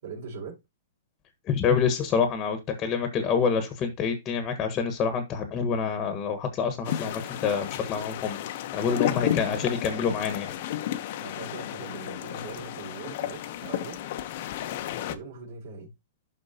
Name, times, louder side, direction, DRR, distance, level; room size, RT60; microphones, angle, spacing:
voice 1, 0.0-0.6 9.1-10.2 11.2-14.1 15.0-15.9, right 4 dB, 60° right, 4.1 m, -41 dB
voice 2, 1.4-8.4 8.7-10.6, left 6 dB, 25° left, 1.4 m, -27 dB
sound 1, 6.8-15.2, left 12 dB, 50° left, 0.8 m, -32 dB
12.0 x 4.3 x 2.8 m
hypercardioid pair, 155°, 0 cm